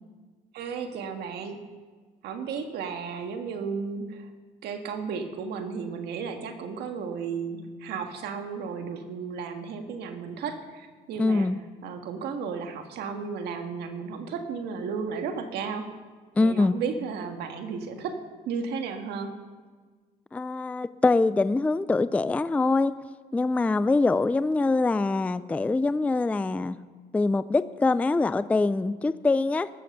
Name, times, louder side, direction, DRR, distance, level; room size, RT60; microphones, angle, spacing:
voice 1, 0.5-1.6 2.2-4.3 4.6-11.5 11.8-15.9 16.4-18.2 18.4-19.3, right 5 dB, 75° right, 5 dB, 1.6 m, -34 dB
voice 2, 11.2-11.6 16.4-16.8 20.3-22.9 23.3-26.8 27.1-29.7, left 3 dB, 10° left, 15 dB, 0.3 m, -24 dB
19.0 x 7.7 x 6.7 m, 1.5 s
cardioid pair, 110°, 17 cm